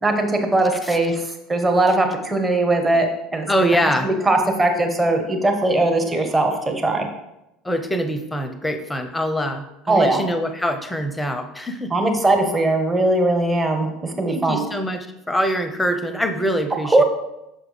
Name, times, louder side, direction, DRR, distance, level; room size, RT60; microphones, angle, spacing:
voice 1, 0.0-3.8 4.0-7.1 9.9-10.2 11.9-14.6 16.8-17.0, right 2 dB, 15° right, 3 dB, 1.0 m, -20 dB
voice 2, 3.5-4.1 7.6-11.9 14.3-17.0, equal, 10° left, 8 dB, 0.6 m, -24 dB
6.3 x 4.9 x 3.3 m, 0.90 s
figure-of-eight pair, 70°, 0 cm